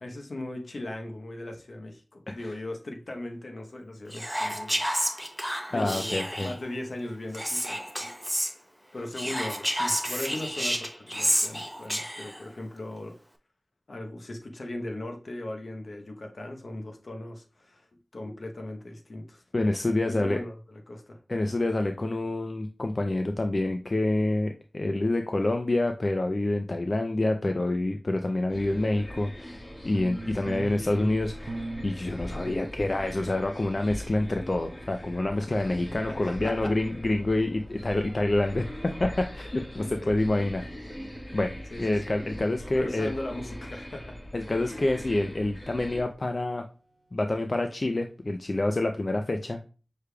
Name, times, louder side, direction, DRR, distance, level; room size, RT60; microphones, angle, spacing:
voice 1, 0.0-5.3 5.7-8.1 8.9-13.2 13.9-17.9 18.1-19.4 20.0-21.2 30.9-31.1 36.1-36.7 39.8-40.1 41.7-42.1 42.7-44.2, left 1 dB, 70° left, 4 dB, 0.9 m, -38 dB
Whispering, 4.1-6.6 7.3-8.5 9.1-12.4, equal, ahead, 0.7 m, -30 dB
voice 2, 5.7-6.5 19.5-20.4 21.3-31.3 31.8-38.6 39.0-40.6 41.3-43.1 44.3-46.6 47.1-49.7, left 2 dB, 50° left, 5 dB, 0.4 m, -27 dB
sound 1, 28.5-46.0, equal, 35° left, 1.6 m, -41 dB
sound 2, 29.9-39.5 40.7-43.4 45.1-46.4, right 2 dB, 70° right, 0.7 m, -45 dB
6.3 x 3.3 x 2.3 m, 0.35 s
cardioid pair, 40°, 0 cm